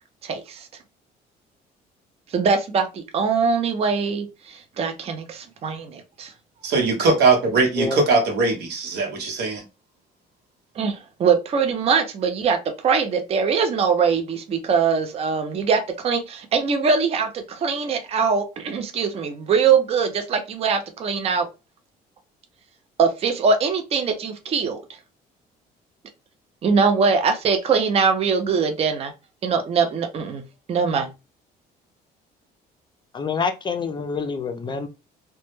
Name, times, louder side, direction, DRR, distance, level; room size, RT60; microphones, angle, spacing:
voice 1, 0.2-0.7 2.3-6.3 10.8-12.6 12.8-21.5 23.0-24.8 26.6-29.1 29.4-30.4 30.7-31.1, right 5 dB, 35° right, 0.4 m, -22 dB
voice 2, 6.6-9.6, right 3 dB, 75° right, 0.9 m, -20 dB
voice 3, 33.1-34.9, left 5 dB, 25° left, 0.3 m, -26 dB
2.1 x 2.0 x 3.0 m
cardioid pair, 110°, 17 cm